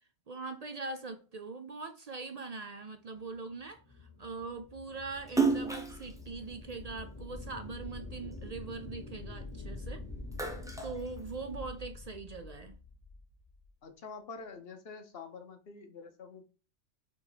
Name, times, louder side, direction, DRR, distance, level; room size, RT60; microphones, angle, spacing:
voice 1, 0.3-3.8 4.2-10.0 10.8-12.8, right 3 dB, 50° right, 0.5 m, -42 dB
sound 1, 3.5-13.7, left 2 dB, 25° left, 1.0 m, -46 dB
Splash splatter, 5.3-7.8 8.3-9.7 10.1-11.8, right 4 dB, 5° right, 0.7 m, -33 dB
voice 2, 13.8-16.5, left 4 dB, 55° left, 1.1 m, -47 dB
4.6 x 4.1 x 4.9 m
omnidirectional pair, 1.2 m